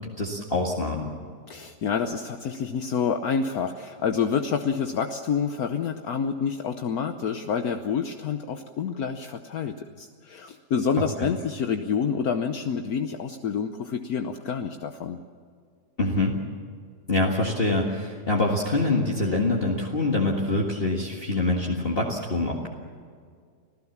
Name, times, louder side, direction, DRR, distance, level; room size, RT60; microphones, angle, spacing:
voice 1, 0.2-1.1 11.2-11.3 16.0-16.4 17.1-22.7, left 2 dB, 35° left, -2 dB, 2.0 m, -25 dB
voice 2, 1.5-15.2, left 6 dB, 65° left, 7 dB, 1.3 m, -28 dB
26.5 x 15.5 x 7.3 m, 2.1 s
omnidirectional pair, 1.7 m